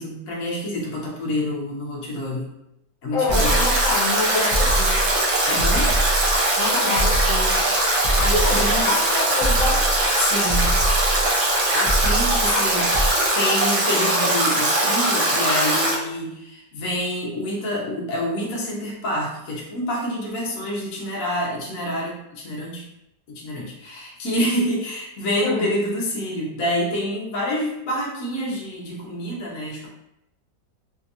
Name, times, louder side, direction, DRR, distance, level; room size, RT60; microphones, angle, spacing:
voice 1, 0.0-2.5 3.0-3.5 5.5-5.9 7.9-8.9 10.2-10.7 11.7-12.9 13.3-22.8 23.3-29.9, equal, 55° left, -4 dB, 1.2 m, -27 dB
voice 2, 3.1-5.0 6.6-7.6 8.3-9.9 25.4-25.7, left 2 dB, 75° left, -3 dB, 1.3 m, -26 dB
sound 1, 3.3-13.1, right 1 dB, 55° right, 0.3 m, -24 dB
Stream / Drip / Trickle dribble, 3.3-16.0, right 1 dB, 75° right, 1.5 m, -21 dB
3.4 x 2.8 x 2.5 m, 0.83 s
omnidirectional pair, 1.9 m